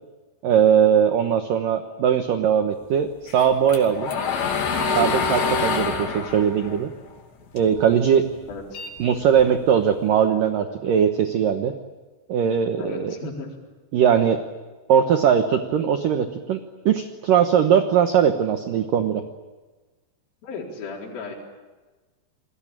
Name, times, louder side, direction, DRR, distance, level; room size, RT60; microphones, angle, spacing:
voice 1, 0.4-4.1 4.8-6.9 7.5-8.3 9.0-11.7 12.3-13.1 13.9-14.4 14.9-19.2, right 8 dB, 70° right, 7 dB, 2.1 m, -20 dB
sound 1, 3.3-7.8 8.2-9.7, left 5 dB, 65° left, 4.8 m, -26 dB
voice 2, 8.5-8.8 12.8-13.5 20.4-21.3, left 3 dB, 50° left, -2 dB, 5.9 m, -34 dB
28.5 x 21.0 x 8.9 m, 1.3 s
omnidirectional pair, 5.5 m